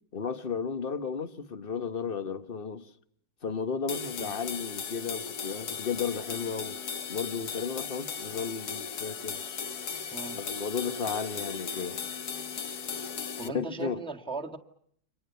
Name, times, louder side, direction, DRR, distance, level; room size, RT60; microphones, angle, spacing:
voice 1, 0.1-2.9 3.4-6.8 7.1-9.4 10.3-12.0 13.4-14.0, left 5 dB, 30° left, 1.3 m, -34 dB
sound 1, 3.9-13.5, left 6 dB, 55° left, 1.8 m, -37 dB
voice 2, 13.4-14.6, right 3 dB, 5° left, 1.6 m, -38 dB
29.5 x 25.5 x 7.0 m
omnidirectional pair, 2.1 m